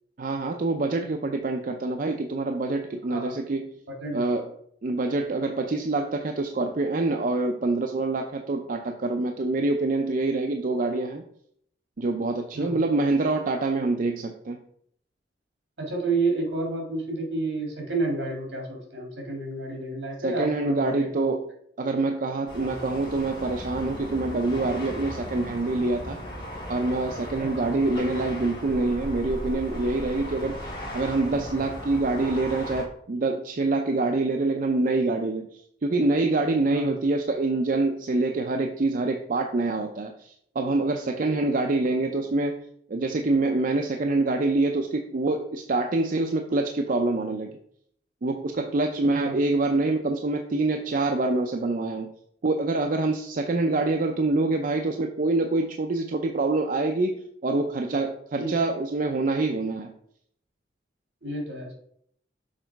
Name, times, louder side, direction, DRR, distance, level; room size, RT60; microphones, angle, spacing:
voice 1, 0.2-3.7 4.1-4.5 4.8-11.2 12.0-14.6 20.2-21.5 21.8-26.2 26.7-30.6 30.9-42.6 42.9-47.6 48.2-52.1 52.4-59.9, right 2 dB, 50° right, 4 dB, 0.5 m, -26 dB
voice 2, 3.9-4.2 12.5-12.8 15.8-21.3 22.6-22.8 27.4-27.5 36.7-37.0 41.2-41.5 49.2-49.3 58.4-58.5 61.2-61.7, right 2 dB, 75° right, 1 dB, 2.2 m, -30 dB
sound 1, 22.5-32.8, equal, 30° left, 2.5 m, -37 dB
6.6 x 3.9 x 4.6 m, 0.67 s
head